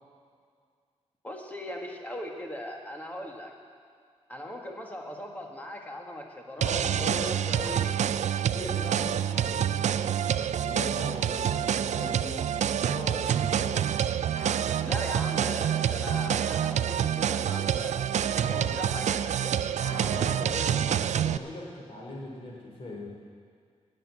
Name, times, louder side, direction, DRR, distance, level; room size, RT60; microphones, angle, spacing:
voice 1, 1.2-3.5 4.3-7.3 7.7-8.3 14.8-19.6, left 1 dB, 15° left, 1 dB, 1.6 m, -40 dB
voice 2, 6.6-8.0 8.5-12.5 12.8-13.9 18.4-19.1 20.0-23.1, left 1 dB, 50° left, -2 dB, 4.0 m, -39 dB
sound 1, 6.6-21.4, right 9 dB, 85° right, 0.4 m, -27 dB
sound 2, 14.1-20.5, left 1 dB, 85° left, 5.2 m, -47 dB
17.0 x 7.7 x 8.7 m, 2.1 s
wide cardioid pair, 155°, 12 cm